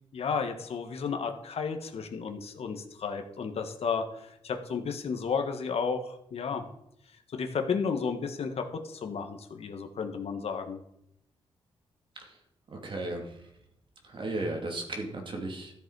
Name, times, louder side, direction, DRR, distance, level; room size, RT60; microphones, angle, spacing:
voice 1, 0.1-6.7 7.3-10.8, left 5 dB, 70° left, 5 dB, 1.5 m, -33 dB
voice 2, 12.7-13.3 14.0-15.8, right 2 dB, 50° right, 2 dB, 2.7 m, -35 dB
13.5 x 7.1 x 4.8 m, 0.79 s
cardioid pair, 95°, 11 cm